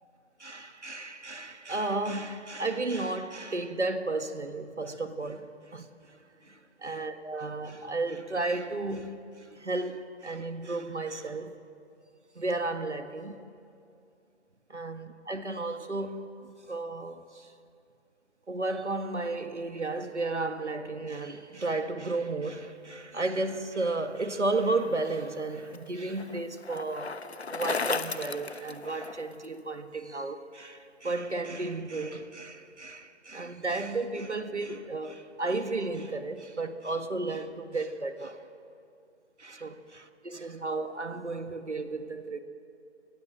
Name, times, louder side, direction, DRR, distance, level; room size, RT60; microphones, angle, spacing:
voice 1, 0.4-5.9 6.4-11.6 12.4-13.4 14.7-17.5 18.5-27.1 27.5-38.4 39.4-42.4, right 2 dB, 80° right, 1.9 m, -33 dB
Bicycle, 25.0-29.5, left 4 dB, 65° left, 1.0 m, -35 dB
29.5 x 21.0 x 7.7 m
figure-of-eight pair, 155°, 35 cm